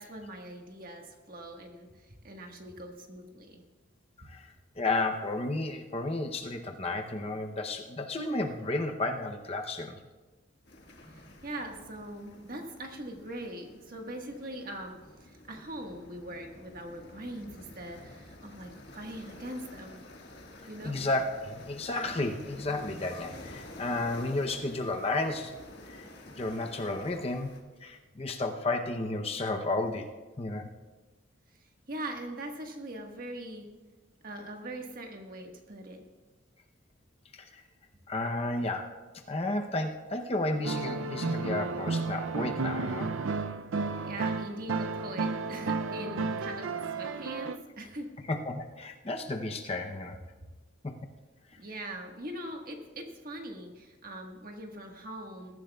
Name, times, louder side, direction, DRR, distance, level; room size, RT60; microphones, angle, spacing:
voice 1, 0.0-3.6 11.1-14.9 15.2-20.0 20.7-21.0 31.6-33.6 34.2-36.0 44.0-48.1 51.6-55.6, right 1 dB, 45° right, 2 dB, 1.5 m, -42 dB
voice 2, 4.2-10.0 20.8-25.5 25.9-27.5 27.8-30.1 30.4-30.7 37.3-37.6 38.1-38.9 39.3-43.1 48.3-50.2 50.8-50.9, left 2 dB, 30° left, 4 dB, 0.7 m, -32 dB
sound 1, 10.7-27.6, left 1 dB, 55° left, 1.7 m, -50 dB
sound 2, 40.6-47.6, right 4 dB, 80° right, 0.5 m, -32 dB
21.0 x 14.0 x 2.3 m, 1.3 s
head